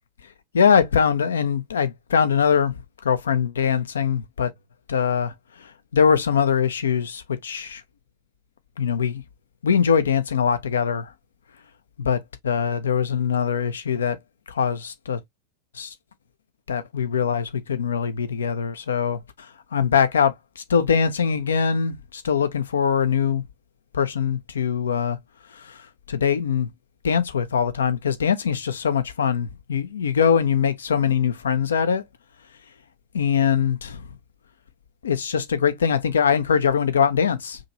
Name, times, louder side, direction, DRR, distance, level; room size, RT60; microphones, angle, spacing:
voice 1, 0.5-2.7 3.0-4.5 4.9-5.3 5.9-7.8 8.8-9.2 9.6-11.1 12.0-12.2 12.4-14.2 14.5-15.2 15.8-15.9 16.7-19.2 19.7-23.4 23.9-25.2 26.1-26.7 27.0-32.0 33.1-34.0 35.0-37.6, left 7 dB, 70° left, 0.6 m, -22 dB
5.1 x 2.9 x 2.7 m
figure-of-eight pair, 90°, 0 cm